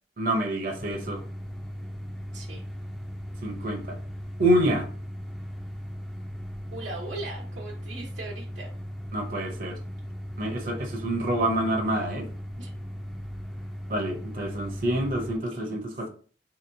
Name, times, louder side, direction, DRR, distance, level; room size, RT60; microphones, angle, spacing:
voice 1, 0.2-1.2 3.4-3.9 4.4-4.9 9.1-9.8 10.4-12.3 13.9-16.1, right 1 dB, 50° right, 3 dB, 0.7 m, -27 dB
sound 1, 0.7-15.4, equal, ahead, 0.4 m, -38 dB
voice 2, 2.3-2.6 6.7-8.7 12.6-12.7 15.5-16.0, right 2 dB, 90° right, -3 dB, 0.9 m, -39 dB
3.9 x 2.8 x 2.6 m, 0.41 s
head